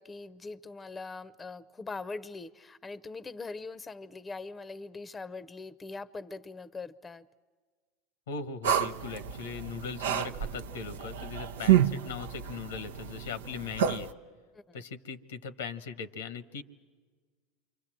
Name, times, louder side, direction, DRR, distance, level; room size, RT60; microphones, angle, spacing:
voice 1, 0.0-7.3 14.5-14.8, left 3 dB, 20° left, 18 dB, 0.7 m, -42 dB
voice 2, 8.3-14.1 14.7-16.6, left 5 dB, 85° left, 13 dB, 1.1 m, -39 dB
sound 1, 8.6-14.1, right 10 dB, 85° right, 0.7 m, -29 dB
28.0 x 24.0 x 7.6 m, 1.5 s
hypercardioid pair, 95°, 0 cm